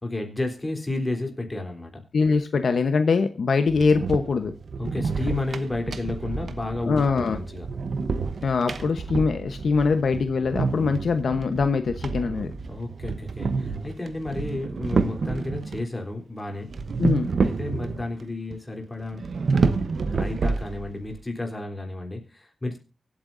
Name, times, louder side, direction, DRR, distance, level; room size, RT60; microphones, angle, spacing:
voice 1, 0.0-2.0 4.8-7.7 12.7-16.7 17.4-19.3 20.1-22.8, left 2 dB, 20° left, 3 dB, 3.5 m, -32 dB
voice 2, 2.1-4.5 6.8-7.4 8.4-12.5 17.0-17.3, left 4 dB, 75° left, 8 dB, 1.0 m, -23 dB
sound 1, 3.7-15.9 16.7-18.2 18.5-18.6 19.1-21.1, right 4 dB, 70° right, 1.0 m, -29 dB
24.0 x 8.7 x 2.6 m, 0.33 s
wide cardioid pair, 105°, 0 cm